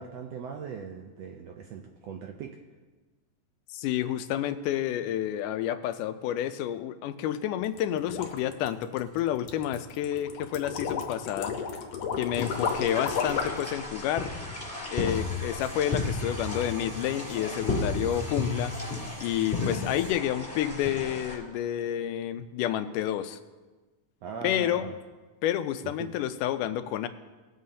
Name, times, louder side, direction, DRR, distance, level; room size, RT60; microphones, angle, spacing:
voice 1, 0.0-2.6 24.2-24.9 26.0-26.1, right 6 dB, 80° right, 3 dB, 1.5 m, -40 dB
voice 2, 3.7-11.5 12.2-14.3 14.9-18.7 19.2-23.4 24.4-24.9 25.4-27.1, left 11 dB, 90° left, 11 dB, 2.2 m, -29 dB
sound 1, 7.6-13.7, left 6 dB, 65° left, 2.0 m, -33 dB
sound 2, 12.3-21.4, left 3 dB, 5° left, 3.1 m, -33 dB
sound 3, 15.0-20.1, right 1 dB, 55° right, 4.6 m, -52 dB
19.5 x 7.8 x 2.8 m, 1.3 s
omnidirectional pair, 3.6 m